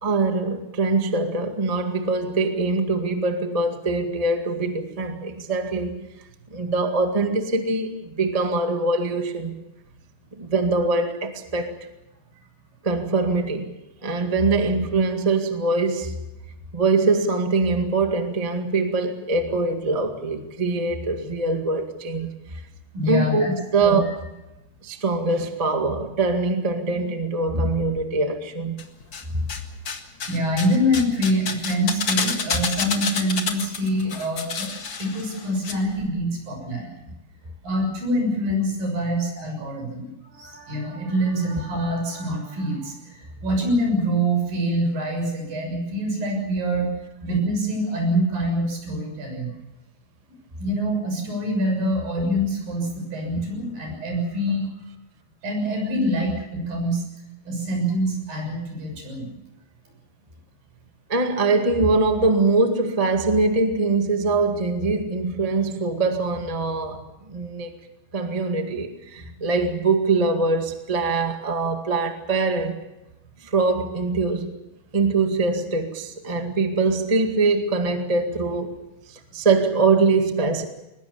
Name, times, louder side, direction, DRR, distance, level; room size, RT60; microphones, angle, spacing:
voice 1, 0.0-5.9 6.5-9.6 10.4-11.7 12.8-13.7 14.0-16.2 16.7-22.6 23.1-24.1 24.8-28.8 29.3-29.5 61.1-67.7 68.1-72.8 73.4-74.6 74.9-78.8 79.1-80.7, right 3 dB, 20° right, 0.8 m, -23 dB
voice 2, 22.9-23.5 23.8-24.1 30.3-34.7 35.0-37.1 37.6-46.9 47.2-49.5 50.6-54.7 55.4-57.0 57.4-59.3 69.3-69.4, equal, 65° right, 8.6 m, -25 dB
sound 1, 28.8-29.6 29.8-35.7 36.0-36.1, left 5 dB, 45° left, 1.7 m, -29 dB
22.5 x 21.0 x 7.1 m
omnidirectional pair, 4.4 m